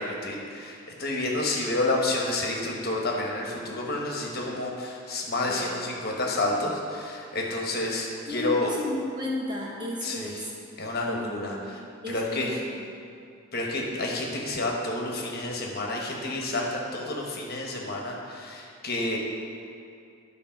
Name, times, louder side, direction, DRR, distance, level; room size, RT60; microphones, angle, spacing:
voice 1, 0.0-8.7 10.0-10.3 10.8-11.5 12.1-12.5 13.5-19.2, left 2 dB, 45° left, -1 dB, 1.2 m, -29 dB
voice 2, 5.4-5.8 8.2-10.5 11.1-11.8 12.0-12.9, left 1 dB, 20° right, -4 dB, 1.3 m, -34 dB
11.5 x 4.2 x 5.9 m, 2.4 s
head